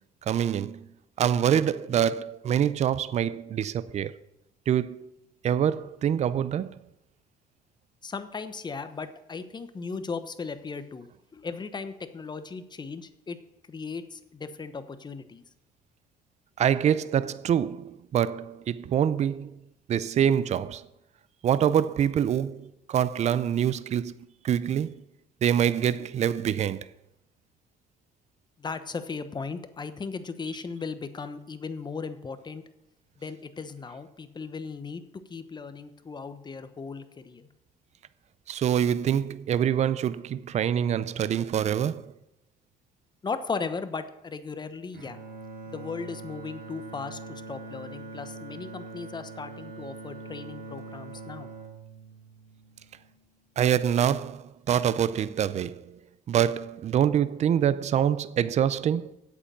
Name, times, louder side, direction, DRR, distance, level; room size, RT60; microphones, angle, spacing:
voice 1, 0.3-0.9 1.2-4.2 4.7-5.1 5.4-6.8 16.6-19.6 19.9-20.9 21.4-24.2 24.4-24.9 25.4-26.9 38.5-42.1 53.6-56.0 56.3-59.2, right 9 dB, 40° right, 0.5 m, -25 dB
voice 2, 8.0-11.1 11.3-13.4 13.7-15.4 28.6-32.6 33.2-35.0 35.3-37.5 43.2-45.2 45.7-51.5, left 4 dB, 25° left, 0.9 m, -37 dB
Bowed string instrument, 44.9-53.2, right 3 dB, 75° right, 2.9 m, -43 dB
8.4 x 8.0 x 7.4 m
cardioid pair, 110°, 17 cm